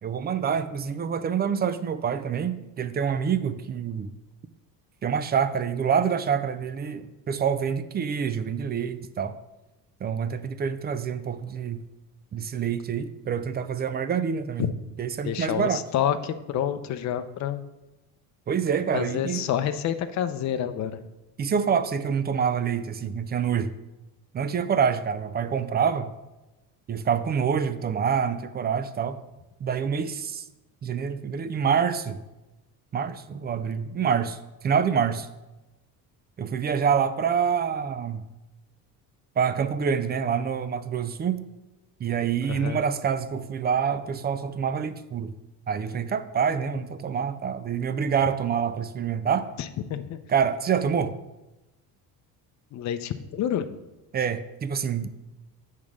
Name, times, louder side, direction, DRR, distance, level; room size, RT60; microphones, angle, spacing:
voice 1, 0.0-4.1 5.0-9.4 10.0-11.8 12.3-14.7 15.0-15.8 18.5-19.4 21.4-23.7 24.3-26.1 26.9-29.2 29.6-30.4 30.8-32.2 32.9-34.4 34.6-35.3 36.4-38.3 39.4-41.4 42.0-45.3 45.7-49.5 50.3-51.1 54.1-55.1, right 7 dB, 25° right, 12 dB, 0.3 m, -26 dB
voice 2, 15.2-17.6 18.9-21.0 42.4-42.8 49.6-50.2 52.7-53.8, left 10 dB, 45° left, 10 dB, 0.6 m, -28 dB
8.3 x 3.6 x 6.2 m, 1.0 s
cardioid pair, 125°, 39 cm